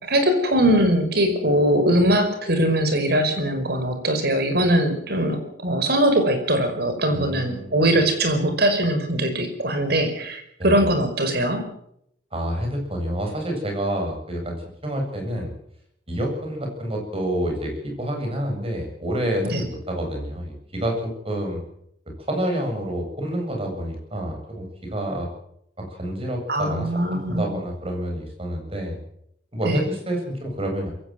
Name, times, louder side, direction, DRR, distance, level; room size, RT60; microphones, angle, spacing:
voice 1, 0.0-11.6 19.4-19.6 26.5-27.6 29.6-29.8, right 1 dB, 60° right, 7 dB, 5.3 m, -21 dB
voice 2, 7.1-7.8 10.6-10.9 12.3-14.6 14.8-15.5 16.1-21.6 22.3-25.3 25.8-29.0 29.5-30.9, right 1 dB, 30° right, 2 dB, 7.6 m, -28 dB
22.0 x 16.5 x 7.8 m, 0.72 s
head